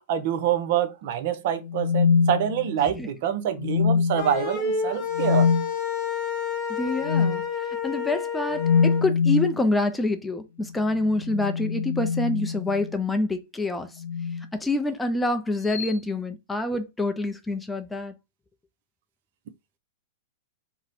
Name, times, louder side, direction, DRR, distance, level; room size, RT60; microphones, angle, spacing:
voice 1, 0.1-5.5, right 10 dB, 60° right, 0.5 m, -26 dB
sound 1, 1.6-2.9 3.6-4.3 5.1-5.6 7.0-7.4 8.5-9.6 11.1-12.9 14.0-14.4 15.7-15.9, left 6 dB, 80° left, 0.7 m, -24 dB
sound 2, 4.2-9.0, left 6 dB, 30° left, 0.8 m, -29 dB
voice 2, 6.7-7.4 7.8-13.9 14.5-18.1, left 2 dB, 10° left, 0.4 m, -26 dB
2.7 x 2.0 x 4.0 m
hypercardioid pair, 130°, 0 cm